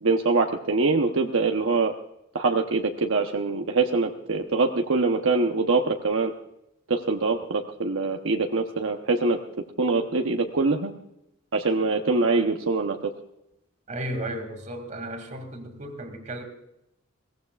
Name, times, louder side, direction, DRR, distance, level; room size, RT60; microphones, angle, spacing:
voice 1, 0.0-1.9 2.3-6.3 6.9-9.4 9.8-10.9 11.5-13.1, right 3 dB, 75° right, 3 dB, 0.9 m, -24 dB
voice 2, 13.9-16.5, right 1 dB, 40° right, 5 dB, 2.4 m, -34 dB
22.0 x 17.5 x 2.4 m, 0.84 s
head